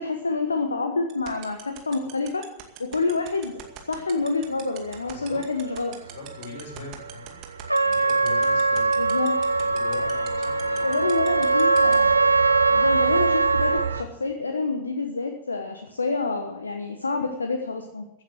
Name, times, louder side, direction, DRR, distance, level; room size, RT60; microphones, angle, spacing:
voice 1, 0.0-2.5 2.8-3.6 3.9-6.0 9.0-9.4 10.8-12.1 12.7-18.0, left 3 dB, 75° left, 5 dB, 1.2 m, -28 dB
sound 1, 1.1-11.9, right 19 dB, 40° right, 2.2 m, -40 dB
sound 2, 3.5-14.0, right 6 dB, 70° right, 1.0 m, -34 dB
voice 2, 5.1-5.4 6.0-7.4 7.7-8.8 9.6-11.0 18.1-18.2, left 5 dB, 55° left, 0 dB, 5.8 m, -41 dB
Trumpet, 7.7-13.9, right 3 dB, 85° right, 0.6 m, -21 dB
15.0 x 8.9 x 7.9 m, 0.85 s
figure-of-eight pair, 90°, 0 cm